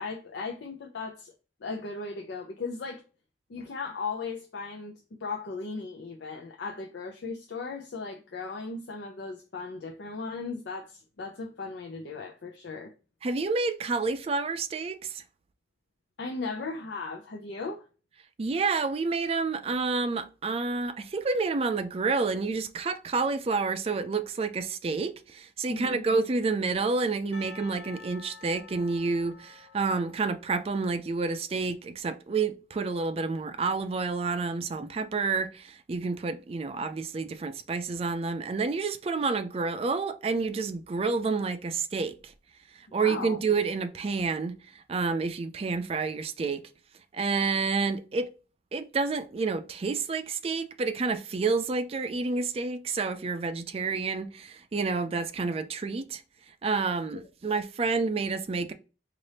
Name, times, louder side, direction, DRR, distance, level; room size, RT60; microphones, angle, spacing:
voice 1, 0.0-1.3 1.6-3.0 3.5-12.9 16.2-17.9 25.7-26.0 42.9-43.4, left 4 dB, 90° left, 0.5 m, -37 dB
voice 2, 13.2-15.2 18.4-42.3 42.9-46.6 47.1-48.3 48.7-56.2 56.6-58.7, right 4 dB, 35° right, 0.3 m, -29 dB
Percussion, 27.3-31.2, left 5 dB, 70° left, 1.4 m, -50 dB
4.1 x 2.5 x 3.3 m
head